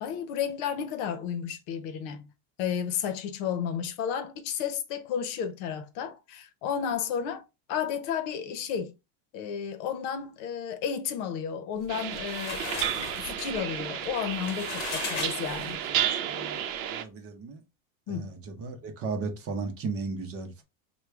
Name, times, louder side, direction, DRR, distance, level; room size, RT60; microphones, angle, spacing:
voice 1, 0.0-2.3 2.6-8.9 9.3-12.6 13.2-16.0 18.1-18.3, left 8 dB, 65° left, 0.8 m, -32 dB
sound 1, 11.8-16.0, left 6 dB, 40° left, 1.1 m, -38 dB
sound 2, 11.9-17.0, right 10 dB, 70° right, 0.7 m, -32 dB
voice 2, 15.8-17.6 18.1-20.6, right 4 dB, 35° right, 0.7 m, -36 dB
4.6 x 2.3 x 3.4 m
cardioid pair, 165°, 41 cm